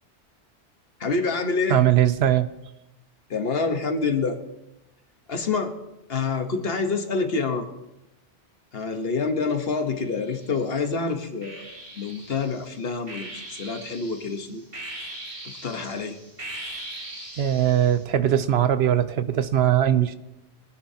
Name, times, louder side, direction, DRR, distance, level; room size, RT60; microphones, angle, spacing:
voice 1, 1.0-1.8 3.3-4.4 5.3-5.7 6.1-7.7 8.7-14.6 15.4-16.2, left 4 dB, 60° left, 6 dB, 1.3 m, -27 dB
voice 2, 1.7-2.5 17.4-20.1, right 11 dB, 70° right, 12 dB, 0.9 m, -20 dB
sound 1, 10.0-10.8 11.4-18.0, right 1 dB, 30° right, 1.8 m, -40 dB
23.0 x 10.0 x 2.8 m, 0.94 s
omnidirectional pair, 1.1 m